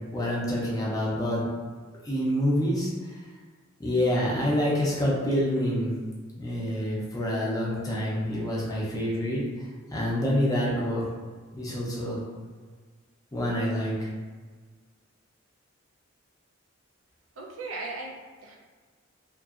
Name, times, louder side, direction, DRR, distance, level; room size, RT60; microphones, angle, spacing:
voice 1, 0.1-1.5 2.0-3.1 3.8-5.9 6.4-9.4 9.9-11.1 11.5-12.2 13.3-14.1, equal, 20° left, -6 dB, 0.6 m, -27 dB
voice 2, 17.4-18.6, right 3 dB, 80° right, -1 dB, 0.5 m, -37 dB
2.9 x 2.5 x 2.4 m, 1.5 s
head